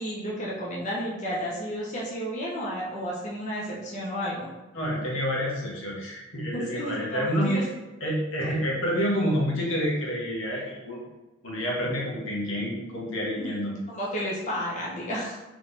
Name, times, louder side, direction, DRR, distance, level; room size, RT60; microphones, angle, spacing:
voice 1, 0.0-4.5 6.5-7.6 8.4-8.5 13.3-13.6 13.9-15.4, equal, 40° left, -5 dB, 0.8 m, -32 dB
voice 2, 4.7-7.6 8.0-11.0 11.4-13.7, equal, 85° left, -3 dB, 1.3 m, -28 dB
3.7 x 3.2 x 3.9 m, 1.1 s
head